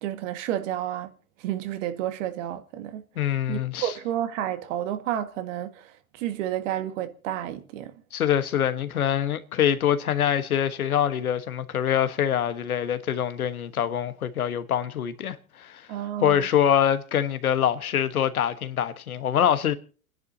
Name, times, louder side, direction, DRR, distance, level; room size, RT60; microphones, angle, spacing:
voice 1, 0.0-1.1 1.4-8.0 15.9-16.5, right 11 dB, 60° right, 1.8 m, -31 dB
voice 2, 3.2-3.9 8.1-15.9 16.2-19.7, left 9 dB, 85° left, 1.3 m, -24 dB
29.5 x 10.5 x 2.7 m
hypercardioid pair, 100°, 42 cm